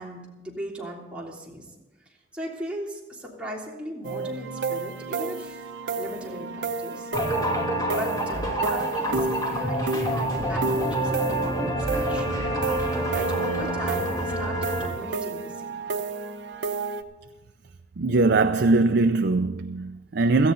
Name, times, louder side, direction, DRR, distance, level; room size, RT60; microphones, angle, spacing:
voice 1, 0.0-1.7 2.3-5.7 5.9-7.1 7.9-12.5 12.8-15.8, right 1 dB, 5° right, 3.2 m, -37 dB
sound 1, 4.0-17.0, right 4 dB, 85° right, 0.9 m, -31 dB
sound 2, 7.1-14.9, equal, 25° left, 2.4 m, -28 dB
voice 2, 18.0-20.5, right 3 dB, 65° right, 0.5 m, -21 dB
17.5 x 14.0 x 3.9 m
head